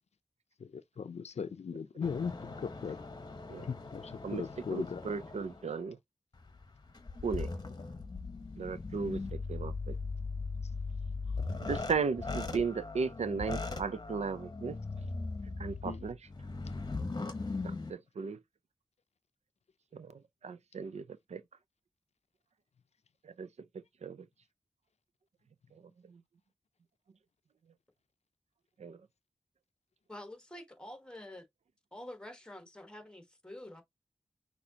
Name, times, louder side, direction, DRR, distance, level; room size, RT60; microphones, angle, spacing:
voice 1, 0.6-3.0 3.6-5.0 11.4-11.5 15.8-16.0, left 6 dB, 70° left, 0.5 m, -39 dB
sound 1, 2.0-5.7 6.3-17.9, left 3 dB, 35° left, 0.9 m, -39 dB
voice 2, 4.7-6.0 7.2-7.5 8.6-10.0 11.6-14.8 15.6-16.1 17.6-18.4 19.9-21.0 21.3-21.4 23.2-23.5 24.0-24.3 26.1-26.2 28.8-29.0, right 5 dB, 75° right, 0.5 m, -36 dB
voice 3, 30.1-31.5 31.9-33.8, left 1 dB, 5° left, 1.2 m, -47 dB
6.0 x 2.8 x 2.8 m
wide cardioid pair, 80°, 12 cm